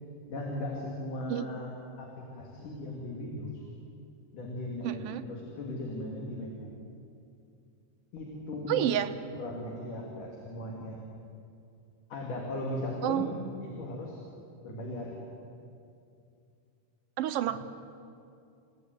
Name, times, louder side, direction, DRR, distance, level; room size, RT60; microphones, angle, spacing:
voice 1, 0.3-2.1 2.3-3.6 4.3-6.7 8.1-9.0 9.3-11.0 12.1-13.3 13.6-14.2 14.6-15.2, left 1 dB, 70° left, -1 dB, 4.3 m, -37 dB
voice 2, 4.8-5.2 8.7-9.1 13.0-13.3 17.2-17.6, right 11 dB, 70° right, 9 dB, 1.4 m, -29 dB
29.5 x 18.0 x 9.4 m, 2.5 s
omnidirectional pair, 3.8 m